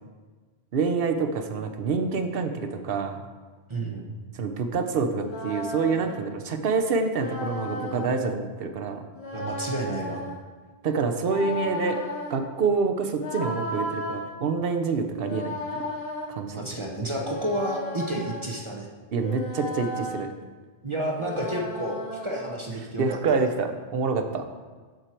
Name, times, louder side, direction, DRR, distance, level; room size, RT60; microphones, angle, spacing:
voice 1, 0.7-3.2 4.4-9.0 10.8-12.0 12.3-15.9 16.3-16.8 19.1-20.3 23.0-24.5, right 4 dB, 65° right, 7 dB, 0.9 m, -27 dB
voice 2, 3.7-4.1 9.3-10.2 16.5-18.9 20.8-23.5, right 1 dB, 30° right, 0 dB, 0.8 m, -31 dB
sound 1, 5.1-6.2 7.1-8.1 9.1-10.4 11.2-12.4 13.2-14.2 15.1-16.3 17.1-18.5 19.1-20.2 21.1-22.5, left 1 dB, 70° left, 1.5 m, -35 dB
7.6 x 6.3 x 4.4 m, 1.4 s
omnidirectional pair, 1.1 m